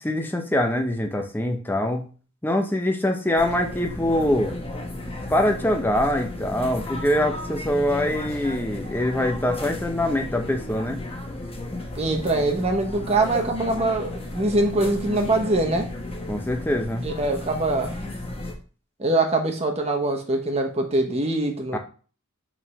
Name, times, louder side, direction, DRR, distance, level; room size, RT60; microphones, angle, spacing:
voice 1, 0.0-2.1 2.4-4.5 5.3-11.0 16.3-17.1 21.7-21.8, left 1 dB, 10° left, 3 dB, 0.7 m, -24 dB
sound 1, 3.4-18.5, left 1 dB, 30° left, 1.1 m, -34 dB
voice 2, 11.9-15.9 17.0-18.0 19.0-21.8, right 2 dB, 30° right, 2 dB, 1.1 m, -23 dB
4.8 x 3.7 x 5.6 m, 0.38 s
head